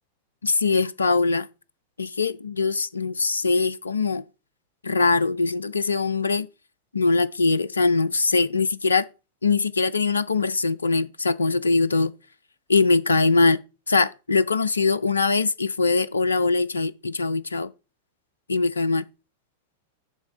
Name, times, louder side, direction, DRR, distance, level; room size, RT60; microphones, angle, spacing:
voice 1, 0.4-1.5 2.0-4.2 4.8-6.5 6.9-9.1 9.4-12.1 12.7-13.6 13.9-17.7 18.5-19.0, left 3 dB, 75° left, 0.3 m, -22 dB
7.2 x 3.2 x 5.5 m
figure-of-eight pair, 90°, 0 cm